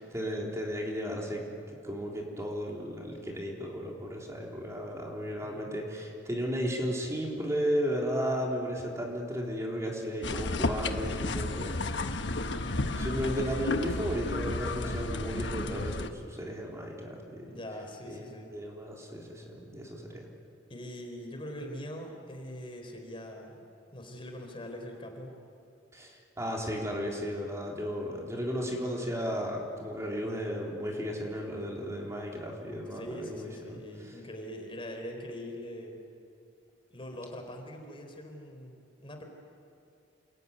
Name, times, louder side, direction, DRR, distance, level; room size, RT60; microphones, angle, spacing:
voice 1, 0.1-12.1 12.6-17.5 18.1-20.3 25.9-33.5, equal, 15° right, -1 dB, 3.7 m, -34 dB
voice 2, 5.4-5.8 17.5-18.5 20.7-23.7 23.9-25.4 32.9-36.0 36.9-39.2, equal, 30° left, 4 dB, 3.9 m, -42 dB
sound 1, 10.2-16.1, left 2 dB, 65° left, 1.4 m, -32 dB
29.0 x 21.0 x 9.7 m, 2.6 s
head